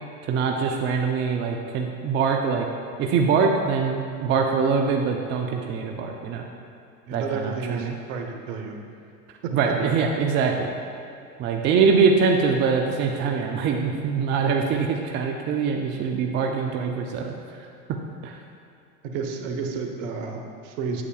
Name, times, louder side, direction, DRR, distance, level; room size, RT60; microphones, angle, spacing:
voice 1, 0.2-2.7 3.0-6.5 7.1-7.9 9.5-10.7 11.4-17.7 18.2-18.4, right 5 dB, 25° right, 2 dB, 0.4 m, -23 dB
voice 2, 7.1-8.8 9.4-9.8 19.0-21.0, right 5 dB, 55° right, 3 dB, 1.1 m, -31 dB
8.5 x 8.0 x 2.4 m, 2.6 s
hypercardioid pair, 95°, 45 cm